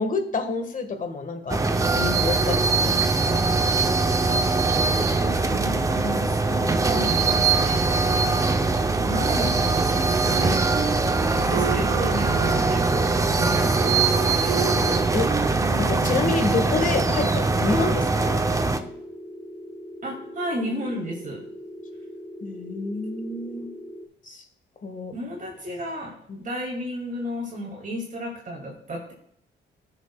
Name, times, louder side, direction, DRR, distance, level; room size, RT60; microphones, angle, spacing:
voice 1, 0.0-3.4 14.7-15.3 15.8-18.4 22.4-23.7 24.2-24.4 24.8-25.1 26.3-26.4, left 3 dB, 40° left, 6 dB, 1.6 m, -28 dB
sound 1, 1.5-18.8, right 3 dB, 15° right, 0.7 m, -22 dB
voice 2, 4.9-8.5 8.9-11.0 11.3-14.0 14.3-14.7 20.0-21.4 25.1-29.1, right 1 dB, 40° right, -2 dB, 2.5 m, -33 dB
sound 2, 6.3-24.1, equal, 5° left, 2.1 m, -41 dB
Wind instrument woodwind instrument, 10.3-16.2, right 8 dB, 75° right, 1.5 m, -33 dB
15.5 x 6.7 x 2.3 m, 0.71 s
cardioid pair, 90°, 20 cm